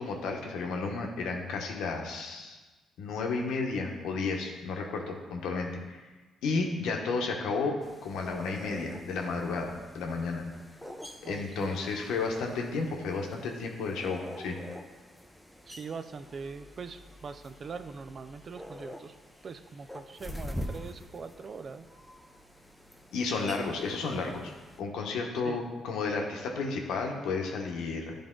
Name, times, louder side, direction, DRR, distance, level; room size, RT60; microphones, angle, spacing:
voice 1, 0.0-2.6 3.0-6.0 6.4-7.8 8.0-10.4 11.3-14.6 23.1-24.5 24.8-28.1, left 4 dB, 85° left, 2 dB, 0.9 m, -32 dB
sound 1, 7.8-24.8, equal, 5° left, 0.6 m, -46 dB
voice 2, 11.2-11.8 15.7-19.1 19.4-21.9 25.4-25.6, right 5 dB, 45° right, 11 dB, 0.4 m, -42 dB
10.5 x 3.5 x 3.7 m, 1.3 s
cardioid pair, 90°, 0 cm